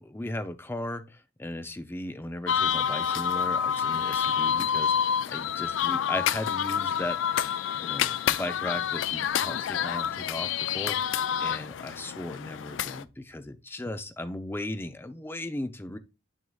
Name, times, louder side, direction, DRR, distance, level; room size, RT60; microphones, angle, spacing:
voice 1, 0.0-16.0, left 1 dB, 10° left, 0.5 m, -37 dB
sound 1, 2.5-13.0, left 8 dB, 85° left, 0.4 m, -28 dB
6.5 x 6.3 x 2.3 m
head